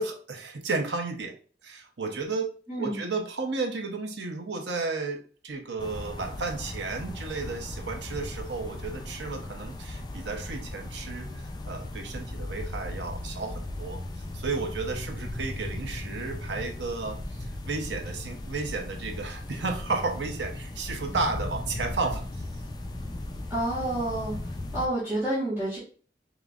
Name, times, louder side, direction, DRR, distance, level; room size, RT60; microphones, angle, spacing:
voice 1, 0.0-1.3 1.6-2.5 2.8-14.0 14.3-22.3, right 3 dB, 80° right, 4 dB, 0.7 m, -33 dB
voice 2, 2.7-3.0 23.5-24.4 24.7-25.8, right 1 dB, 10° right, -9 dB, 1.9 m, -29 dB
sound 1, 5.8-24.9, left 1 dB, 20° left, 0.3 m, -37 dB
4.9 x 3.0 x 2.4 m, 0.41 s
head